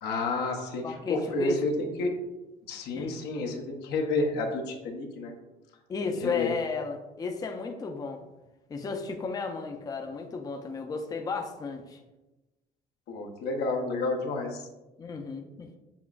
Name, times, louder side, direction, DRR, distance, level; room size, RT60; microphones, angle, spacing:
voice 1, 0.0-0.8 1.1-2.1 2.7-5.3 6.2-6.5 13.1-14.6, left 2 dB, 80° left, 2 dB, 0.7 m, -30 dB
voice 2, 0.8-1.6 2.9-3.1 5.9-8.2 8.7-12.0 15.0-15.8, left 4 dB, 20° left, 4 dB, 0.4 m, -34 dB
6.9 x 2.4 x 2.3 m, 1.1 s
cardioid pair, 110°, 17 cm